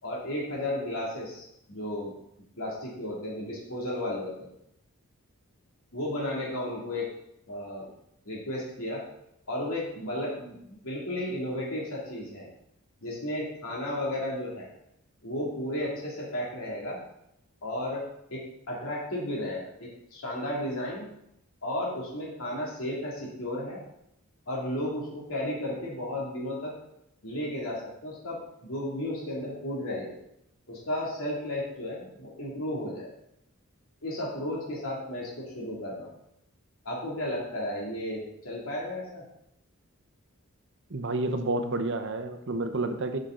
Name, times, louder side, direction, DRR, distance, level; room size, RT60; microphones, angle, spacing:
voice 1, 0.0-2.1 2.6-4.5 5.9-7.1 7.5-7.9 8.2-9.0 9.5-12.5 13.0-14.7 15.2-17.0 17.6-21.1 21.6-23.8 24.5-26.7 27.2-30.2 30.7-33.1 34.0-36.1 36.8-39.2, left 1 dB, 70° left, -5 dB, 2.6 m, -33 dB
voice 2, 40.9-43.2, right 2 dB, 55° right, 7 dB, 0.8 m, -30 dB
11.5 x 5.9 x 3.8 m, 0.78 s
head